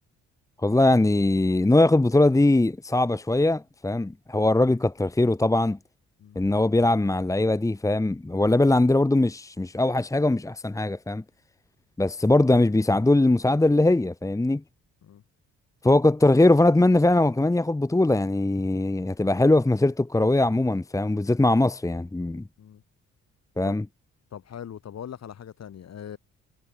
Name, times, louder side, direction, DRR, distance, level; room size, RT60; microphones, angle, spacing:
voice 1, 0.6-5.8 6.3-11.2 12.0-14.6 15.8-22.4 23.6-23.8, left 2 dB, 10° left, 1.2 m, -21 dB
voice 2, 24.3-26.2, left 9 dB, 60° left, 6.2 m, -40 dB
cardioid pair, 90°, 30 cm